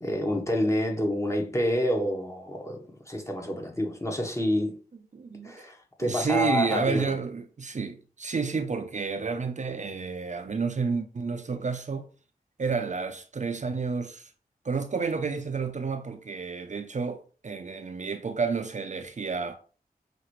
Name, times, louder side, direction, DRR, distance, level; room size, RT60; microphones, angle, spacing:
voice 1, 0.0-2.8 3.1-4.7 5.4-7.2, equal, 20° left, 1.1 m, -28 dB
voice 2, 5.1-5.7 6.0-12.1 12.6-14.3 14.6-19.6, right 5 dB, 50° right, 0.5 m, -30 dB
5.7 x 2.5 x 3.1 m
cardioid pair, 45°, 16 cm